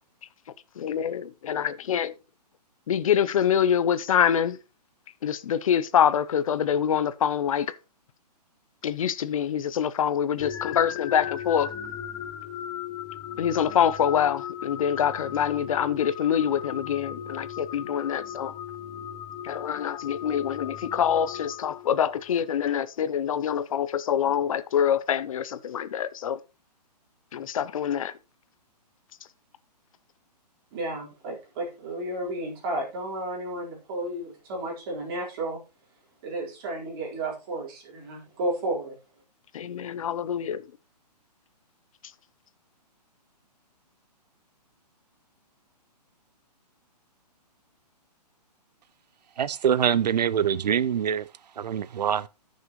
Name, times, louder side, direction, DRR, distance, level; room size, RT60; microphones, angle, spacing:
voice 1, 0.8-2.1 2.9-4.6 5.2-7.7 8.8-11.7 13.4-18.5 19.4-26.4 27.3-28.1 39.5-40.7, left 9 dB, 55° left, 0.7 m, -25 dB
sound 1, 10.4-22.4, left 9 dB, 10° left, 0.5 m, -37 dB
voice 2, 30.7-35.6 36.2-39.0, right 1 dB, 35° right, 4.3 m, -32 dB
voice 3, 49.4-51.2 51.6-52.3, right 8 dB, 75° right, 0.6 m, -24 dB
14.5 x 6.7 x 3.1 m
hypercardioid pair, 155°, 21 cm